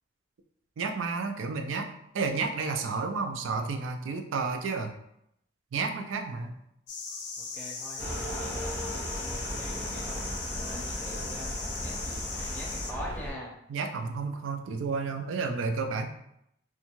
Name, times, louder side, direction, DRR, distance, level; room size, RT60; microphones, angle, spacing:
voice 1, 0.8-4.9 5.7-6.6 13.7-16.1, right 4 dB, 85° right, 6 dB, 0.4 m, -31 dB
sound 1, 6.9-12.9, left 4 dB, 60° left, 0.4 m, -38 dB
voice 2, 7.6-10.3 10.6-13.5, equal, 10° left, -3 dB, 0.5 m, -44 dB
sound 2, 8.0-13.3, equal, 40° right, 0.7 m, -36 dB
2.6 x 2.3 x 2.9 m, 0.76 s
head